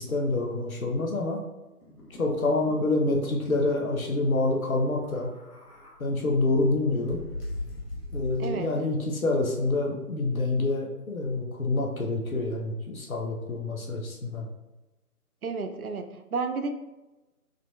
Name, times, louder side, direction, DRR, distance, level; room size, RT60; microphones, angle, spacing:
voice 1, 0.0-1.4 2.2-5.3 6.0-7.2 8.1-14.5, left 2 dB, 65° left, 0 dB, 0.8 m, -27 dB
sound 1, 1.8-2.8 3.1-3.2 3.5-3.7 4.9-6.0 6.5-8.8, left 2 dB, 85° left, 1.3 m, -39 dB
voice 2, 15.4-16.7, right 4 dB, 65° right, 7 dB, 0.5 m, -31 dB
3.7 x 3.2 x 2.3 m, 1.1 s
figure-of-eight pair, 155°, 46 cm